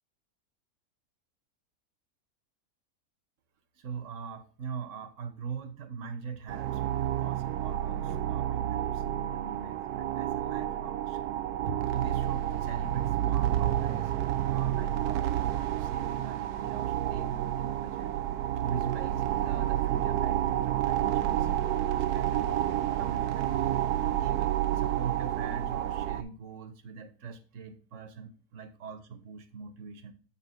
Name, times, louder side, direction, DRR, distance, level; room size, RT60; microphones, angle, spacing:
voice 1, 3.7-14.1 14.5-18.1 18.6-22.6 23.0-23.6 24.0-30.1, right 6 dB, 60° right, 8 dB, 1.1 m, -41 dB
sound 1, 6.5-26.2, right 12 dB, 90° right, 1.1 m, -30 dB
7.3 x 4.3 x 4.2 m, 0.38 s
omnidirectional pair, 1.6 m